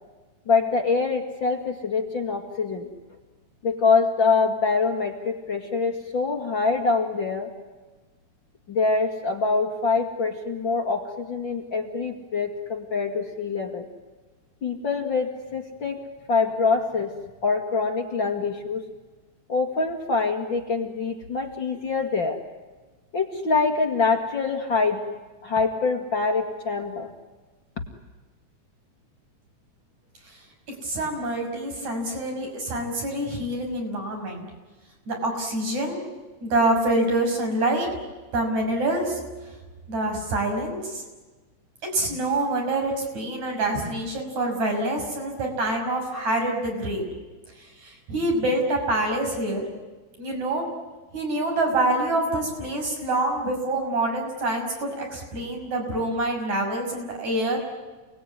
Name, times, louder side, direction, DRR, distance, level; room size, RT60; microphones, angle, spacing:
voice 1, 0.5-2.9 3.6-7.5 8.7-13.8 14.6-16.0 16.3-17.1 17.4-18.8 19.5-22.4 23.1-25.0 25.4-27.1, left 4 dB, 40° left, 3 dB, 2.5 m, -24 dB
voice 2, 30.8-34.4 35.1-36.1 36.4-37.9 38.3-39.2 39.9-41.0 41.8-47.1 47.6-49.7 50.2-50.7 51.1-57.6, right 2 dB, 60° right, 2 dB, 7.5 m, -26 dB
29.5 x 20.0 x 9.7 m, 1.3 s
omnidirectional pair, 3.6 m